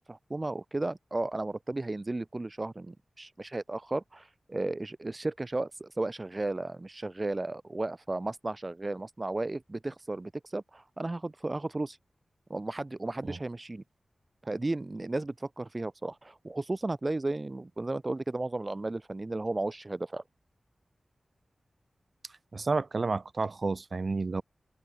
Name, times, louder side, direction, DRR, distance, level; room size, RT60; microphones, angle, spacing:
voice 1, 0.0-12.0 12.5-13.8 14.4-20.2, right 2 dB, 30° right, 1.1 m, -34 dB
voice 2, 22.5-24.4, right 3 dB, 55° right, 0.5 m, -30 dB
wide cardioid pair, 60°, 0 cm